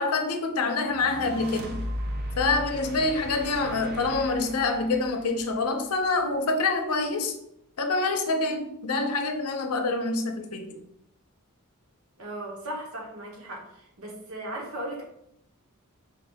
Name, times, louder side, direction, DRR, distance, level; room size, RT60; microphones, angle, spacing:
voice 1, 0.0-1.8 2.4-7.3 7.8-10.8, left 3 dB, 75° left, 4 dB, 0.6 m, -26 dB
sound 1, 0.9-6.2, equal, 45° right, 0.5 m, -37 dB
voice 2, 12.2-15.0, right 1 dB, 65° right, -1 dB, 1.2 m, -37 dB
4.7 x 2.7 x 3.4 m, 0.77 s
head